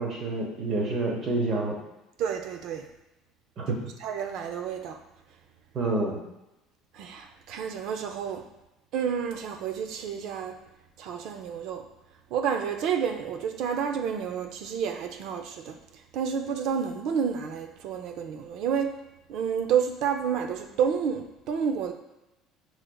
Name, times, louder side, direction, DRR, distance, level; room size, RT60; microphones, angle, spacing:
voice 1, 0.0-1.8 3.6-3.8 5.7-6.2, right 2 dB, 35° right, -1 dB, 1.0 m, -28 dB
voice 2, 2.2-2.9 4.0-5.0 6.9-8.4 8.9-10.5 11.0-11.8 12.3-15.8 16.1-18.9 19.3-21.9, right 7 dB, 55° right, 5 dB, 0.4 m, -30 dB
6.3 x 3.2 x 2.3 m, 0.94 s
cardioid pair, 165°, 0 cm